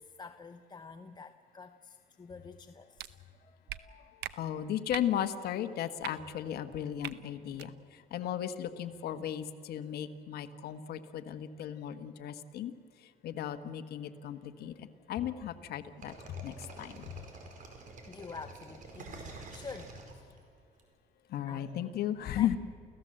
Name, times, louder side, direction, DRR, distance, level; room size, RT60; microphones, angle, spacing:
voice 1, 0.0-3.1 3.4-4.1 18.1-20.4 21.5-21.7 22.3-22.5, left 4 dB, 25° left, 8 dB, 0.8 m, -48 dB
sound 1, 3.0-3.1 3.7-3.8 4.2-4.3 4.9-5.1 6.0-6.1 7.0-7.1 7.5-7.7, right 14 dB, 80° right, 0.8 m, -40 dB
voice 2, 3.9-12.7 13.0-17.2 21.3-22.6, left 10 dB, 70° left, 9 dB, 1.4 m, -36 dB
sound 2, 16.0-20.8, right 3 dB, 50° right, 4.8 m, -48 dB
29.5 x 16.0 x 7.8 m, 2.5 s
cardioid pair, 110°, 17 cm